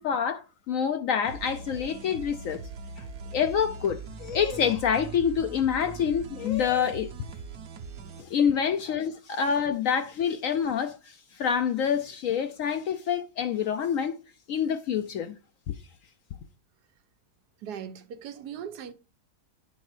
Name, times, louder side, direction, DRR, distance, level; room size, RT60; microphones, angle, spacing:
voice 1, 0.0-2.6 3.0-3.1 3.3-7.1 8.2-14.2 14.5-15.4 15.7-15.8, left 7 dB, 70° left, 0.9 m, -27 dB
sound 1, 1.2-8.2, right 4 dB, 65° right, 1.4 m, -41 dB
voice 2, 17.6-18.9, right 8 dB, 85° right, 1.4 m, -39 dB
9.9 x 5.3 x 4.9 m
omnidirectional pair, 1.7 m